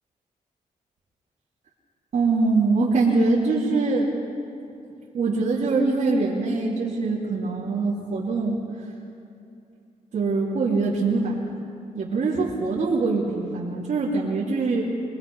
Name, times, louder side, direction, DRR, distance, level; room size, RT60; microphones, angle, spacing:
voice 1, 2.1-4.1 5.1-8.6 10.1-11.5 11.9-14.8, right 3 dB, 65° right, -7 dB, 3.1 m, -23 dB
24.5 x 20.0 x 5.5 m, 2.6 s
cardioid pair, 105°, 14 cm